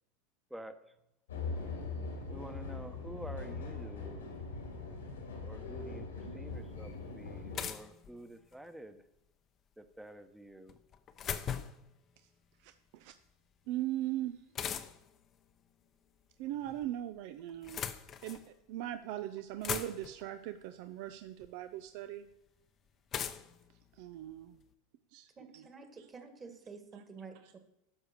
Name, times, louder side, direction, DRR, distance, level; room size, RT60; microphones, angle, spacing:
sound 1, 1.3-7.6, left 3 dB, 90° left, 2.7 m, -41 dB
voice 1, 2.3-4.2 5.4-9.0 9.8-10.8, right 1 dB, 5° right, 8 dB, 1.0 m, -49 dB
sound 2, 6.5-6.6 7.5-8.7 10.7-11.9 14.5-15.2 16.3-16.9 17.5-18.5 19.1-19.2 19.4-20.3 21.4-21.5 23.1-24.6, left 8 dB, 35° left, 0.8 m, -40 dB
voice 2, 12.6-13.1 13.7-14.4 16.4-17.9 18.2-18.4 18.7-22.3 24.0-24.6 25.1-25.3, right 13 dB, 60° right, 9 dB, 0.6 m, -39 dB
voice 3, 25.4-27.6, right 4 dB, 25° right, 6 dB, 1.8 m, -50 dB
12.0 x 5.0 x 6.7 m, 0.88 s
hypercardioid pair, 100°, 0 cm